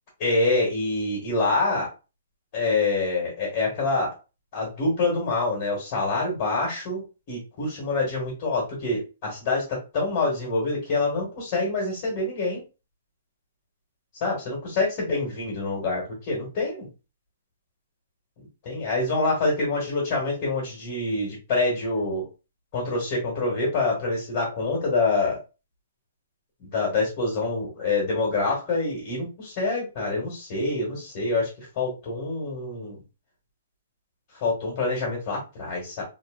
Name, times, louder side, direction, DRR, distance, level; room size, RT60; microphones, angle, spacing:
voice 1, 0.2-1.9 2.5-4.1 4.5-12.6 14.2-16.9 18.6-22.3 22.7-25.4 26.6-33.0 34.3-36.0, left 3 dB, 30° left, -4 dB, 1.2 m, -26 dB
2.7 x 2.5 x 2.4 m, 0.30 s
hypercardioid pair, 175°, 0 cm